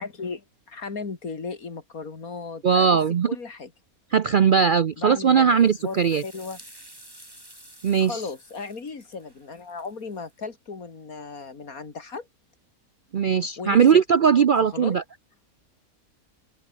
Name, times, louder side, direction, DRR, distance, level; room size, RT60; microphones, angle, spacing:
voice 1, 0.0-3.0 3.3-3.7 5.0-6.6 8.0-12.3 13.6-14.0 14.7-14.9, left 4 dB, 70° left, 3.0 m, -36 dB
voice 2, 2.6-3.3 4.1-6.2 7.8-8.2 13.1-15.0, right 7 dB, 55° right, 0.5 m, -19 dB
sound 1, 5.5-10.3, right 1 dB, 15° right, 4.4 m, -50 dB
open air
omnidirectional pair, 1.5 m